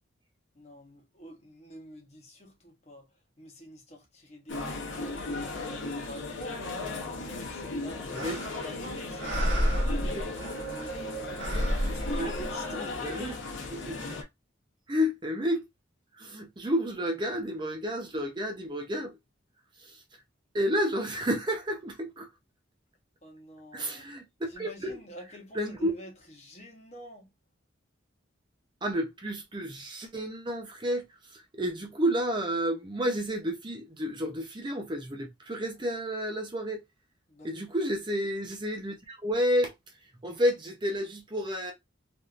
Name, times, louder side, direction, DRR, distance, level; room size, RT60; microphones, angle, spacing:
voice 1, 0.5-3.1 3.4-5.2 5.6-6.6 7.1-11.4 11.9-13.3 23.2-24.1 24.5-27.3 37.3-37.7, equal, 35° left, 0.9 m, -47 dB
sound 1, 4.5-14.2, left 2 dB, 75° left, 0.8 m, -36 dB
voice 2, 8.1-8.4 11.9-12.3 12.8-13.3 13.7-14.0 14.9-15.6 16.1-19.2 19.8-20.0 20.5-22.3 23.7-25.0 25.5-25.9 28.8-36.8 37.4-39.7 40.2-41.7, equal, 25° right, 0.5 m, -31 dB
sound 2, 8.1-8.8 9.2-11.0 11.4-12.9, equal, 70° right, 1.0 m, -30 dB
3.4 x 2.6 x 2.4 m
head